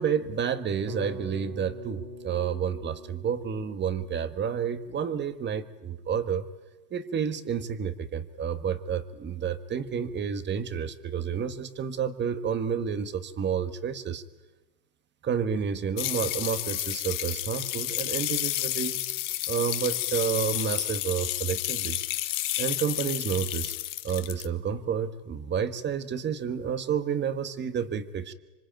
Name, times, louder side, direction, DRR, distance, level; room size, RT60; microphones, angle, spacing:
voice 1, 0.0-6.5 6.9-14.2 15.2-19.0 19.5-22.0 22.6-23.7 24.0-28.3, right 7 dB, 25° right, 11 dB, 1.5 m, -30 dB
Bass guitar, 0.9-5.2, equal, 75° right, 5.6 m, -44 dB
sound 1, 16.0-24.5, left 16 dB, 45° left, 1.6 m, -31 dB
26.5 x 25.0 x 9.0 m, 1.2 s
supercardioid pair, 135°, 46 cm